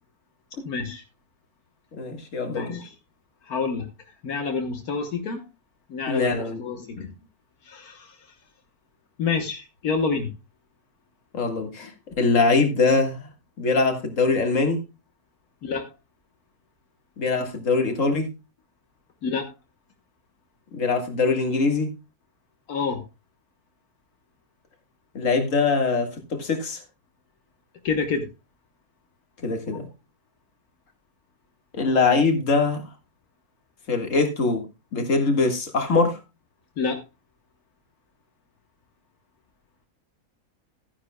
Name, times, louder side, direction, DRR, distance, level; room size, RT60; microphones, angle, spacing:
voice 1, 0.7-1.0 2.5-2.9 3.5-3.9 4.2-5.4 5.9-7.0 7.7-8.1 9.2-10.3 15.6-15.9 19.2-19.5 22.7-23.0 27.9-28.3 36.8-37.0, left 5 dB, 80° left, 1.7 m, -28 dB
voice 2, 1.9-2.8 6.1-6.6 7.0-7.1 11.3-11.9 12.2-13.3 13.6-14.8 17.2-18.3 20.7-21.9 25.1-26.8 29.4-29.9 31.7-32.8 33.9-34.6 34.9-36.2, left 4 dB, 60° left, 2.1 m, -22 dB
14.5 x 9.8 x 2.3 m
omnidirectional pair, 1.6 m